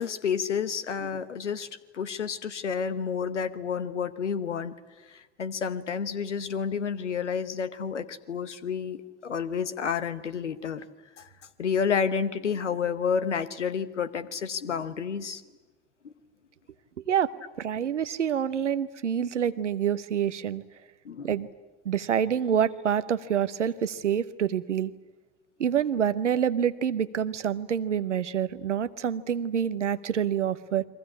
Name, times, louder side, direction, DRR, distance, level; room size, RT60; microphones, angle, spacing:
voice 1, 0.0-1.7 1.9-4.7 5.1-10.9 11.2-11.3 11.6-15.4 16.0-16.1 21.0-21.4, left 6 dB, 85° left, 12 dB, 1.0 m, -30 dB
voice 2, 17.6-20.6 21.2-21.5 21.8-24.9 25.6-30.8, right 8 dB, 85° right, 14 dB, 0.9 m, -27 dB
30.0 x 23.0 x 8.5 m, 1.2 s
figure-of-eight pair, 50°, 35 cm